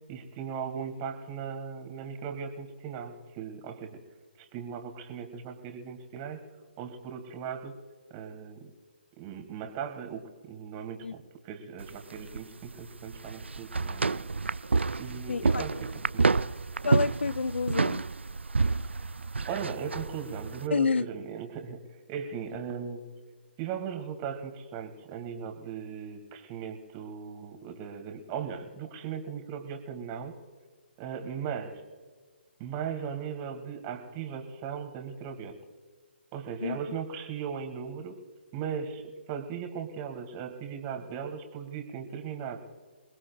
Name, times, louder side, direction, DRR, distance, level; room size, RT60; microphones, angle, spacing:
voice 1, 0.1-4.0 4.4-6.4 6.8-7.8 8.1-8.7 9.2-14.2 15.0-16.3 19.0-19.1 19.4-23.0 23.6-30.4 31.0-31.8 32.6-35.6 36.3-38.2 38.5-42.6, right 7 dB, 30° right, 2.2 m, -38 dB
sound 1, 11.8-20.7, right 4 dB, 85° right, 0.4 m, -29 dB
voice 2, 15.3-15.7 16.8-18.1 20.7-21.1 36.6-36.8, left 4 dB, 80° left, 0.4 m, -28 dB
28.0 x 20.0 x 2.4 m
figure-of-eight pair, 140°, 6 cm